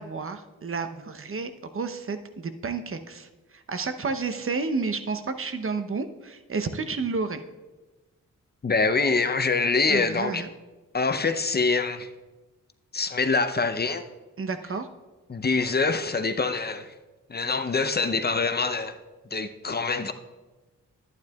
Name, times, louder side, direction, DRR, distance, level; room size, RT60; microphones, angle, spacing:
voice 1, 0.0-7.4 9.9-10.5 14.4-14.9, right 4 dB, 40° right, 8 dB, 0.8 m, -31 dB
voice 2, 8.6-10.4 10.9-12.1 12.9-14.0 15.3-16.9 17.3-19.0 19.3-20.1, left 4 dB, 30° left, 9 dB, 0.6 m, -25 dB
11.5 x 9.3 x 2.3 m, 1.2 s
supercardioid pair, 40°, 34 cm